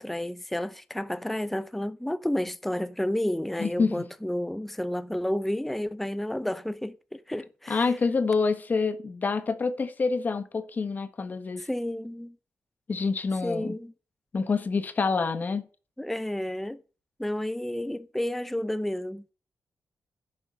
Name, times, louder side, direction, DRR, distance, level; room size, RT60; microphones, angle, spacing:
voice 1, 0.0-7.9 11.6-12.4 13.4-13.9 16.0-16.8 17.2-19.2, left 1 dB, 5° left, 0.6 m, -31 dB
voice 2, 3.6-4.0 7.7-11.6 12.9-13.8 14.3-15.6, left 4 dB, 40° left, 1.4 m, -27 dB
11.0 x 7.3 x 6.5 m
wide cardioid pair, 125°, 5 cm